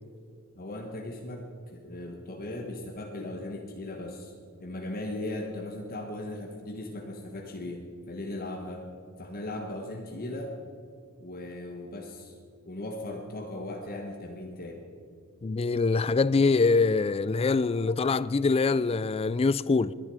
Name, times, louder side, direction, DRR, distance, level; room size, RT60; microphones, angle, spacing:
voice 1, 0.5-4.3 4.6-8.8 9.2-10.6 11.2-12.4 12.6-14.8, left 1 dB, 45° left, 1.4 m, -38 dB
voice 2, 15.4-19.9, left 4 dB, 25° left, 0.4 m, -24 dB
20.5 x 11.0 x 4.9 m
head